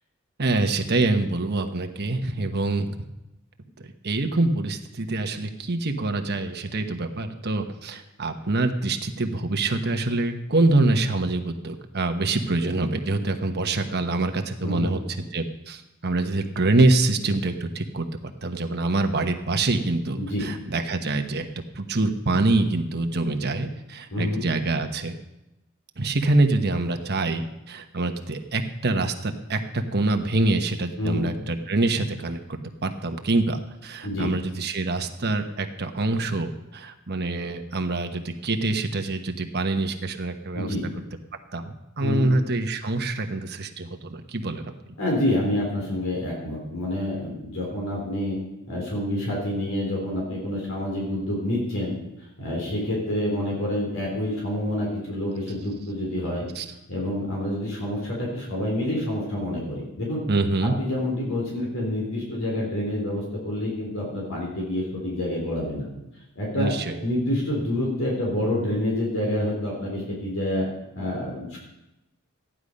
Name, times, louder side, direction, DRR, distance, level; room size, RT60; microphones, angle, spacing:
voice 1, 0.4-3.0 3.8-15.0 15.3-21.5 21.7-25.2 26.0-40.7 41.5-44.7 56.6-56.7 60.3-60.7 66.6-67.0, right 2 dB, 50° right, 5 dB, 1.2 m, -25 dB
voice 2, 24.1-24.4 31.0-31.3 34.0-34.3 40.5-40.8 42.0-42.3 45.0-48.4 48.7-51.9 52.4-56.5 56.9-60.2 60.6-65.9 66.4-66.7 67.0-70.7 70.9-71.6, left 1 dB, 70° left, -3 dB, 3.9 m, -27 dB
14.5 x 10.0 x 5.3 m, 0.93 s
head